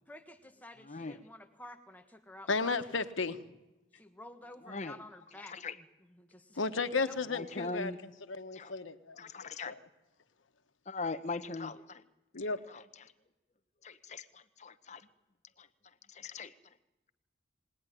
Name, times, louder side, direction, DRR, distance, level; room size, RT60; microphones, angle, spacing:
voice 1, 0.1-2.8 4.0-5.6 6.3-7.2, left 1 dB, 10° left, 6 dB, 1.1 m, -51 dB
voice 2, 0.8-1.2 4.6-5.0 5.4-5.8 7.3-8.0 8.5-8.7 9.2-9.8 10.9-12.0 12.7-13.1 13.8-15.1 15.6-15.7 16.1-16.5, left 3 dB, 35° left, 11 dB, 0.9 m, -41 dB
voice 3, 2.5-3.4 6.6-7.9 8.3-9.2 9.7-9.8 12.3-12.6, left 4 dB, 90° left, 8 dB, 1.2 m, -33 dB
20.5 x 18.0 x 10.0 m, 1.0 s
head